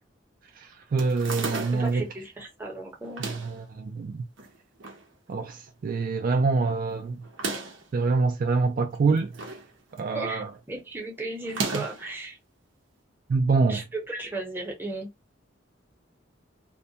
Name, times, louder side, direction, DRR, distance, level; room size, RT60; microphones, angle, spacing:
voice 1, 0.6-2.1 3.2-4.2 5.3-7.2 7.9-9.6 9.9-10.5 11.7-11.8 13.3-13.8, right 4 dB, 45° right, 0.3 m, -26 dB
sound 1, 1.0-2.0 3.0-3.6 4.4-5.0 5.4-5.5 5.7-5.8 7.2-7.9 8.9-9.7 10.0-10.3 11.4-12.1, right 3 dB, 90° right, 0.7 m, -34 dB
voice 2, 1.7-3.3 10.1-12.4 13.7-15.1, right 2 dB, 10° right, 0.8 m, -35 dB
2.2 x 2.2 x 2.7 m
head